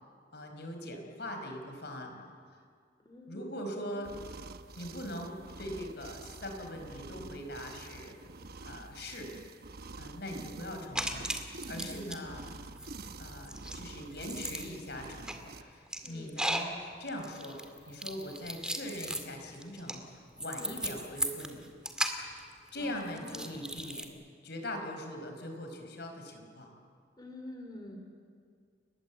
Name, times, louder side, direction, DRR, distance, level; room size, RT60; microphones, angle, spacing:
voice 1, 0.3-2.3 3.3-4.1 4.8-8.2 8.6-9.3 10.0-11.3 11.7-12.5 13.2-17.6 17.9-21.7 22.7-24.2 24.4-26.7, left 1 dB, 65° left, 4 dB, 4.9 m, -41 dB
voice 2, 3.0-3.5 11.8-12.3 16.0-16.3 20.6-20.7 22.7-23.7 27.2-28.0, left 1 dB, 25° left, 2 dB, 2.7 m, -47 dB
sound 1, 4.0-15.6, right 3 dB, 60° right, 1.0 m, -47 dB
sound 2, 10.9-12.2 12.5-24.0, right 1 dB, 5° right, 2.2 m, -37 dB
30.0 x 20.5 x 8.2 m, 2.2 s
head